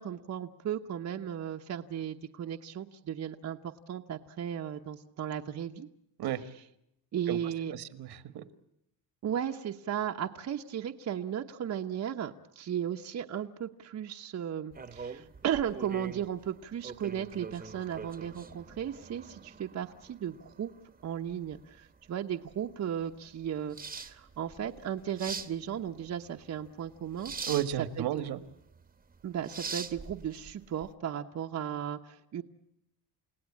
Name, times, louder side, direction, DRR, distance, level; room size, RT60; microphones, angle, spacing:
voice 1, 0.0-5.9 7.1-7.7 9.2-20.7 21.0-27.3 28.0-28.1 29.2-32.4, right 9 dB, 40° right, 3 dB, 1.1 m, -35 dB
voice 2, 7.7-8.4 27.5-28.4, right 12 dB, 65° right, 13 dB, 1.6 m, -33 dB
Closing Curtains, 14.7-30.9, right 5 dB, 20° right, 1.2 m, -44 dB
29.5 x 17.5 x 8.5 m, 0.79 s
cardioid pair, 130°, 41 cm